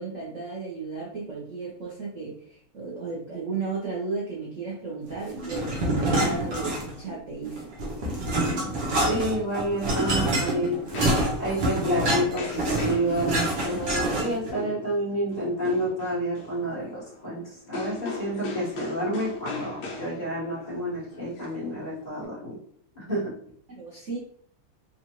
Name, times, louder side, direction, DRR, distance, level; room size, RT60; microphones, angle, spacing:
voice 1, 0.0-7.7 23.7-24.2, right 4 dB, 85° right, -5 dB, 0.6 m, -34 dB
sound 1, 5.4-7.1 7.5-14.5, right 1 dB, 60° right, 1.4 m, -26 dB
voice 2, 9.0-10.8 11.4-22.6 22.9-23.3, right 1 dB, 25° left, -8 dB, 1.1 m, -29 dB
sound 2, 10.0-22.2, left 2 dB, 65° left, 1.2 m, -39 dB
4.1 x 2.4 x 3.0 m, 0.63 s
omnidirectional pair, 2.4 m